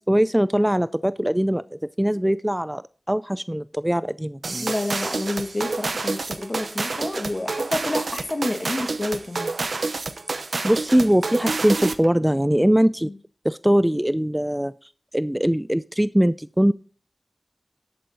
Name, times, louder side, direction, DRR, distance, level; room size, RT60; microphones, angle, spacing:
voice 1, 0.1-4.7 10.6-13.1 13.4-16.7, equal, 10° right, 16 dB, 0.3 m, -21 dB
sound 1, 4.4-12.1, right 3 dB, 90° right, 0.7 m, -28 dB
voice 2, 4.6-9.5 13.0-13.1, left 1 dB, 45° left, 6 dB, 2.1 m, -29 dB
11.0 x 8.4 x 3.9 m, 0.40 s
wide cardioid pair, 50°, 0 cm